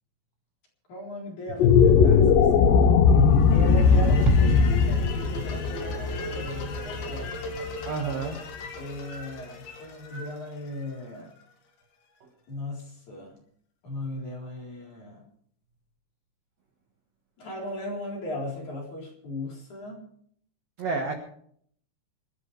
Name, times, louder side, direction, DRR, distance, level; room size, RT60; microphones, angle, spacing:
voice 1, 0.9-7.4 8.7-11.3 12.5-13.4 13.8-15.3 17.4-20.0, left 1 dB, 40° left, -2 dB, 5.1 m, -37 dB
sound 1, 1.5-7.9, left 6 dB, 80° left, 2.0 m, -19 dB
sound 2, 3.3-11.4, left 1 dB, 60° left, 3.9 m, -40 dB
Bass drum, 4.3-5.7, right 10 dB, 80° right, 2.5 m, -30 dB
voice 2, 7.8-8.4 12.2-12.3 20.8-21.1, right 4 dB, 60° right, 2 dB, 1.8 m, -30 dB
26.0 x 12.5 x 3.4 m, 0.63 s
omnidirectional pair, 5.4 m